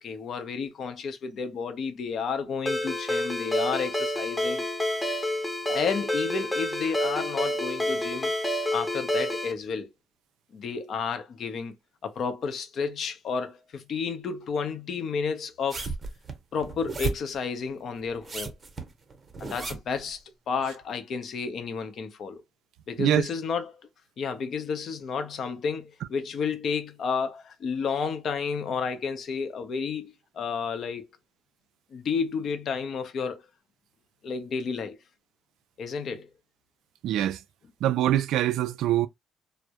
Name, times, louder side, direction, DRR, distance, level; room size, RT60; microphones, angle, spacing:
voice 1, 0.0-4.7 5.7-8.3 8.7-9.9 10.5-11.7 12.0-15.9 16.5-18.6 19.4-22.4 22.9-23.8 24.2-31.0 31.9-33.4 34.2-35.0 35.8-36.3, left 5 dB, 55° left, 0.6 m, -31 dB
Ringtone, 2.7-9.5, left 1 dB, 10° left, 0.7 m, -28 dB
sound 1, 15.7-17.4 18.1-20.0 20.7-20.8, right 4 dB, 30° right, 0.7 m, -34 dB
voice 2, 37.0-37.4 37.8-39.1, right 12 dB, 75° right, 0.3 m, -24 dB
2.3 x 2.0 x 2.8 m
cardioid pair, 90°, 0 cm